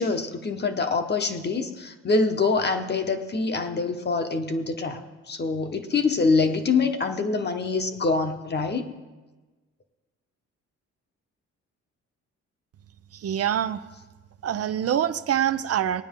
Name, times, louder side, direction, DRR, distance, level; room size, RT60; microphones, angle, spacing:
voice 1, 0.0-5.0 5.3-8.8, left 4 dB, 35° left, 6 dB, 1.2 m, -25 dB
voice 2, 13.1-13.8 14.4-16.0, right 10 dB, 55° right, 12 dB, 0.6 m, -25 dB
19.0 x 9.4 x 3.8 m, 1.2 s
cardioid pair, 90°, 30 cm